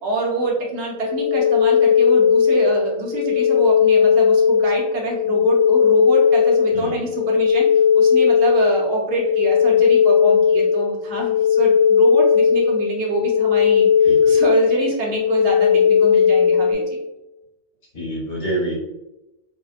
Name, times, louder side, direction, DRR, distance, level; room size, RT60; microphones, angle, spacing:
voice 1, 0.0-16.9, right 2 dB, 60° right, -2 dB, 1.0 m, -25 dB
sound 1, 1.0-16.7, left 7 dB, 20° right, 0.4 m, -17 dB
voice 2, 6.7-7.0 14.0-14.4 17.9-18.7, right 1 dB, 50° left, -6 dB, 1.1 m, -27 dB
2.7 x 2.1 x 2.4 m, 0.95 s
omnidirectional pair, 1.4 m